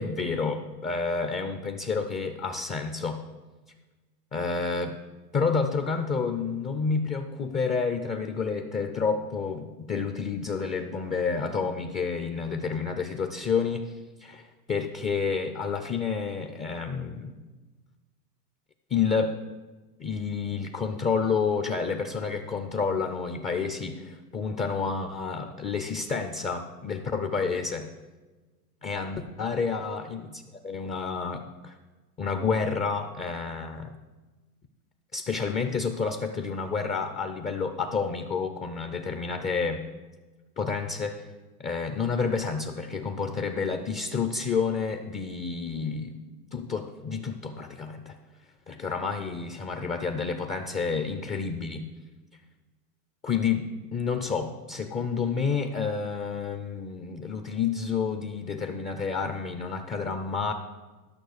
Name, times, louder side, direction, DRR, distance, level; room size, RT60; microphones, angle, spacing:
voice 1, 0.0-3.2 4.3-5.0 5.3-17.4 18.9-19.4 20.0-27.9 28.8-31.8 32.2-34.0 35.1-39.8 40.6-41.2 41.6-48.2 48.7-51.8 53.2-60.5, left 5 dB, 15° left, 7 dB, 0.4 m, -29 dB
12.0 x 6.0 x 6.5 m, 1.3 s
hypercardioid pair, 115°, 48 cm